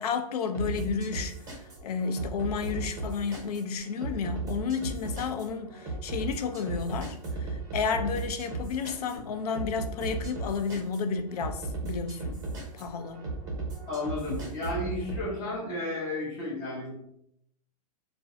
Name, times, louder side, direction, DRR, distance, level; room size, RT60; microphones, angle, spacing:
voice 1, 0.0-1.3 1.8-12.4 12.7-13.2, left 5 dB, 70° left, 0.4 m, -32 dB
sound 1, 0.5-15.2, right 3 dB, 15° right, 0.6 m, -36 dB
voice 2, 13.9-16.9, left 2 dB, 35° left, 0.8 m, -33 dB
2.5 x 2.1 x 2.4 m
hypercardioid pair, 145°, 20 cm